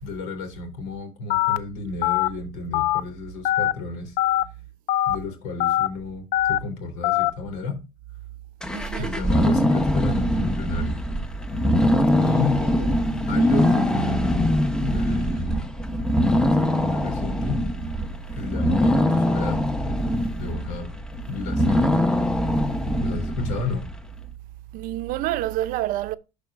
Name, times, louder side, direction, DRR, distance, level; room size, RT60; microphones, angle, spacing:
voice 1, 0.0-4.1 5.1-7.8 8.9-11.0 12.2-12.6 13.3-14.5 14.8-15.7 16.6-17.6 18.3-19.6 20.4-20.9 21.3-22.0 23.0-23.8, left 3 dB, 90° left, 3.4 m, -32 dB
Telephone, 1.3-1.6 2.0-2.3 2.7-3.0 3.4-3.7 4.2-4.4 4.9-5.1 5.6-5.9 6.3-6.6 7.0-7.3, left 14 dB, 70° left, 0.5 m, -21 dB
sound 1, 8.6-24.0, left 1 dB, 5° left, 0.9 m, -23 dB
voice 2, 8.7-9.2 12.2-13.0 24.7-26.2, right 14 dB, 75° right, 0.6 m, -29 dB
12.5 x 4.7 x 2.5 m
cardioid pair, 110°, 14 cm